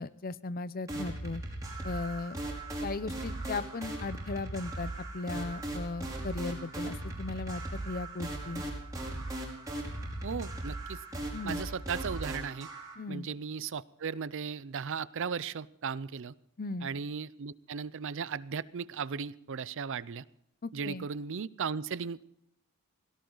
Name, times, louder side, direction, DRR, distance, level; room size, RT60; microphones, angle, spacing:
voice 1, 0.0-1.4 1.8-2.4 2.8-8.6 11.3-11.6 13.0-13.3 16.6-16.9 20.6-21.1, left 3 dB, 40° left, 16 dB, 0.6 m, -37 dB
sound 1, 0.9-12.9, right 1 dB, 15° right, 5.1 m, -38 dB
voice 2, 10.2-11.0 11.4-12.7 13.1-16.3 16.8-20.2 20.7-22.2, right 6 dB, 60° right, 18 dB, 0.5 m, -36 dB
17.5 x 17.5 x 4.0 m, 0.77 s
head